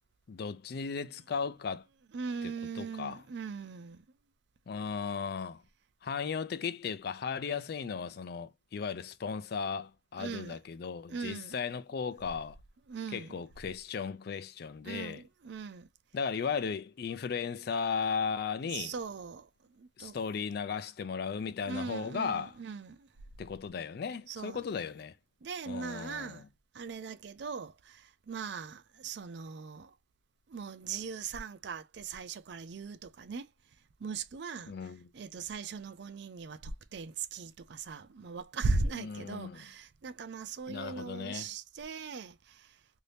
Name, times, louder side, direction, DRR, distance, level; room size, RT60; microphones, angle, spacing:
voice 1, 0.3-1.8 2.8-3.2 4.7-5.6 6.0-12.6 13.1-15.2 16.1-18.9 20.0-22.5 23.4-25.1 25.7-26.5 34.7-35.1 39.0-39.6 40.7-41.5, left 6 dB, 55° left, 0.4 m, -36 dB
voice 2, 2.1-4.0 10.2-10.6 11.1-11.6 12.9-13.4 14.8-15.9 18.6-19.5 19.8-20.1 21.7-23.1 24.3-24.8 25.4-26.4 26.7-29.9 30.5-33.5 34.0-34.7 35.1-42.7, right 4 dB, 60° right, 0.4 m, -39 dB
2.7 x 2.7 x 3.3 m
head